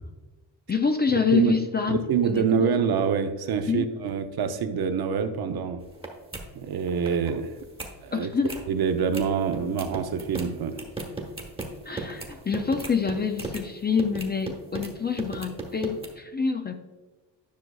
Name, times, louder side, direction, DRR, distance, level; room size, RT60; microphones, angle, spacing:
voice 1, 0.7-2.0 2.3-2.7 3.7-3.9 8.1-8.6 11.9-16.7, left 6 dB, 25° left, 0.4 m, -26 dB
voice 2, 1.9-5.9 6.5-7.5 8.0-8.3 8.7-10.8, right 7 dB, 55° right, 0.7 m, -26 dB
sound 1, 5.8-6.1 6.3-6.4 6.8-7.3 7.6-7.9 8.3-8.6 9.1-9.2 9.5-13.6 14.0-14.9 15.2-16.1, right 2 dB, 10° right, 1.2 m, -36 dB
10.5 x 6.1 x 2.3 m
cardioid pair, 130°, 44 cm